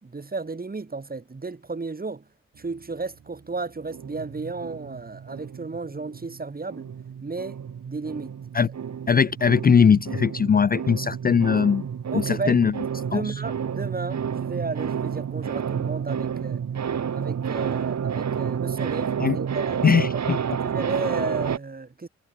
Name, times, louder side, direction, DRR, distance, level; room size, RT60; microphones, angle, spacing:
voice 1, 0.0-2.2 2.6-6.9 7.2-7.6 7.9-8.4 12.1-12.7 13.0-16.6 17.1-19.9 20.2-22.1, right 3 dB, 30° right, 2.6 m, -33 dB
sound 1, 3.9-6.4 6.7-21.6, right 7 dB, 55° right, 4.3 m, -30 dB
voice 2, 9.1-11.8 12.1-12.7 13.1-13.3 19.2-19.4 19.8-20.4, left 6 dB, 30° left, 0.5 m, -20 dB
hypercardioid pair, 40°, 32 cm